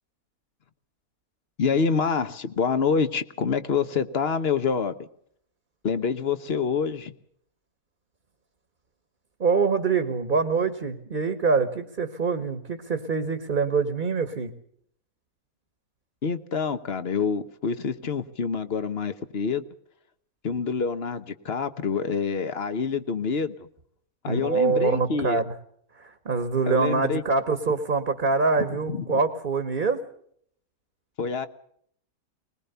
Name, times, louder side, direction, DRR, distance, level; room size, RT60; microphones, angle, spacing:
voice 1, 1.6-4.9 5.8-7.1 16.2-19.6 20.4-23.7 24.2-25.4 26.7-27.2 28.6-29.1 31.2-31.5, left 5 dB, 45° left, 12 dB, 1.1 m, -27 dB
voice 2, 9.4-14.5 24.3-25.5 26.0-30.0, right 4 dB, 35° right, 9 dB, 1.4 m, -25 dB
21.0 x 20.5 x 6.8 m, 0.65 s
omnidirectional pair, 1.6 m